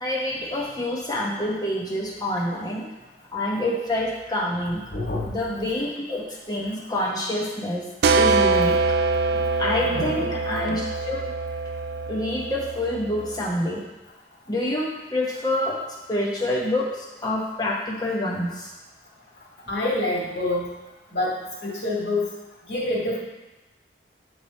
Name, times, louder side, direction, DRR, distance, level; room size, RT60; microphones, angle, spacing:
voice 1, 0.0-2.9 3.3-4.8 5.3-7.8 8.1-8.8 9.6-11.2 12.1-13.8 14.5-15.8 16.1-18.7, left 1 dB, 20° left, -3 dB, 1.0 m, -27 dB
voice 2, 4.9-5.3 9.3-9.4 9.8-10.3 19.7-20.6 21.1-21.3 21.6-22.3 22.7-23.2, left 1 dB, 65° left, -5 dB, 2.0 m, -26 dB
sound 1, 8.0-13.5, right 3 dB, 60° right, 0.3 m, -24 dB
8.9 x 3.2 x 4.2 m, 1.1 s
head